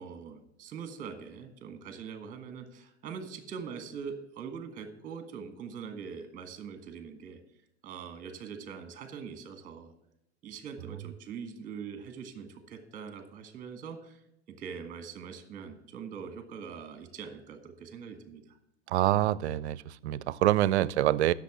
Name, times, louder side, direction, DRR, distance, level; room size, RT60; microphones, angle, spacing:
voice 1, 0.0-7.4 7.8-9.9 10.4-14.2 14.6-18.4, right 6 dB, 20° right, 1.4 m, -42 dB
voice 2, 18.9-21.3, right 14 dB, 65° right, 0.5 m, -26 dB
8.3 x 6.5 x 7.1 m
hypercardioid pair, 110°, 36 cm